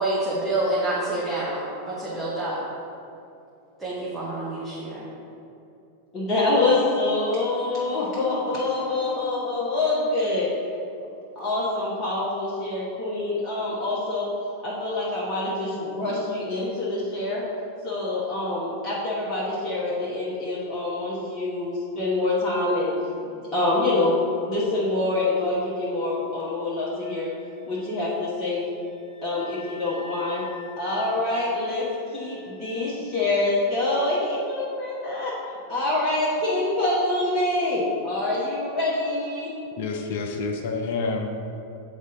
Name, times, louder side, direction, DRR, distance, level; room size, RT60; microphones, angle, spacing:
voice 1, 0.0-2.6 3.8-5.0, right 2 dB, 5° right, -9 dB, 1.3 m, -27 dB
voice 2, 6.1-10.7 11.3-14.3 14.6-17.4 17.8-22.9 23.3-27.3 27.6-28.6 29.2-30.4 30.8-35.3 35.7-39.5, left 2 dB, 25° left, -7 dB, 1.2 m, -26 dB
Wind instrument woodwind instrument, 26.8-34.2, left 3 dB, 50° right, 1.3 m, -49 dB
voice 3, 39.8-41.3, left 4 dB, 55° left, 4 dB, 0.6 m, -28 dB
8.0 x 4.1 x 3.8 m, 2.7 s
figure-of-eight pair, 90°, 0 cm